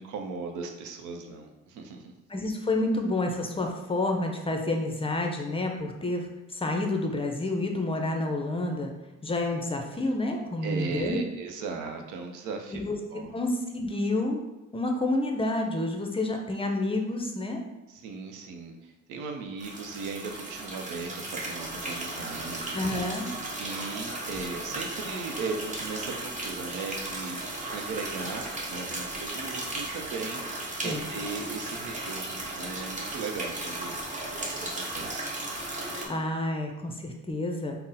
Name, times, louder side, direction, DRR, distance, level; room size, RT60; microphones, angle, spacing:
voice 1, 0.0-2.1 10.6-12.8 13.1-13.4 17.9-22.9 23.5-27.4 27.7-34.0 34.4-35.3, right 4 dB, 90° right, 4 dB, 0.6 m, -37 dB
voice 2, 2.3-8.9 9.2-11.2 12.7-13.0 13.3-14.4 14.7-17.6 22.7-23.3 30.8-31.1 36.1-37.8, left 2 dB, 20° left, 3 dB, 0.5 m, -29 dB
sound 1, 19.6-36.1, right 2 dB, 25° right, 0.8 m, -36 dB
3.7 x 2.0 x 4.0 m, 1.0 s
cardioid pair, 90°, 30 cm